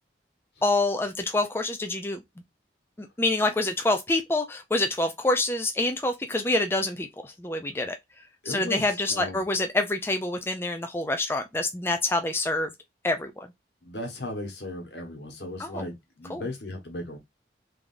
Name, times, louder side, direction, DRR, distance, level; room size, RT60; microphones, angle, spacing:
voice 1, 0.6-2.2 3.0-8.0 8.5-12.7 13.0-13.5 15.6-15.9 16.3-16.4, left 2 dB, 15° left, 0.4 m, -26 dB
voice 2, 8.4-9.4 13.8-17.2, left 1 dB, 75° left, 1.3 m, -36 dB
3.5 x 3.3 x 2.5 m
head